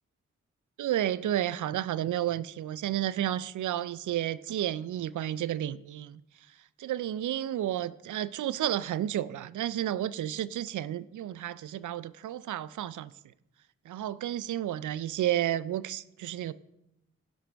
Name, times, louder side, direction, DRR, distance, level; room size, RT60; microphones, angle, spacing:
voice 1, 0.8-6.2 6.8-13.1 13.9-16.5, right 12 dB, 80° right, 0.5 m, -31 dB
16.0 x 6.1 x 3.4 m
cardioid pair, 40°, 30 cm